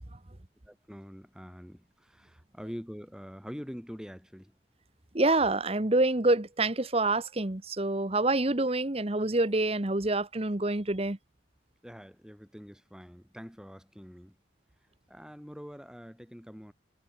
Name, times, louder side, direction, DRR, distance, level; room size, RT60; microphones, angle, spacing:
voice 1, 0.7-4.5 11.8-14.4 15.1-16.7, equal, 5° right, 7.9 m, -45 dB
voice 2, 5.1-11.2, right 2 dB, 30° right, 1.2 m, -27 dB
head